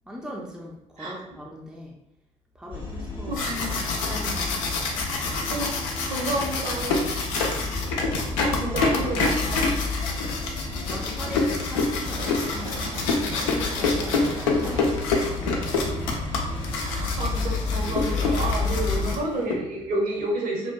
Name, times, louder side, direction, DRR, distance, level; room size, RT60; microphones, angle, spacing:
voice 1, 0.0-2.0 2.5-3.8 8.1-9.6 10.7-12.7 13.1-15.9, equal, 5° right, -2 dB, 0.5 m, -40 dB
sound 1, 2.7-19.2, left 3 dB, 30° left, 0.8 m, -32 dB
sound 2, 3.1-19.5, left 3 dB, 75° left, 0.4 m, -27 dB
voice 2, 3.3-4.4 5.2-5.7 6.1-7.1 8.4-9.8 16.8-20.7, right 2 dB, 55° right, -1 dB, 0.8 m, -30 dB
Train, 6.1-7.7 8.3-18.9, right 1 dB, 85° right, 0.5 m, -43 dB
2.7 x 2.2 x 2.2 m, 0.86 s
figure-of-eight pair, 50°, 17 cm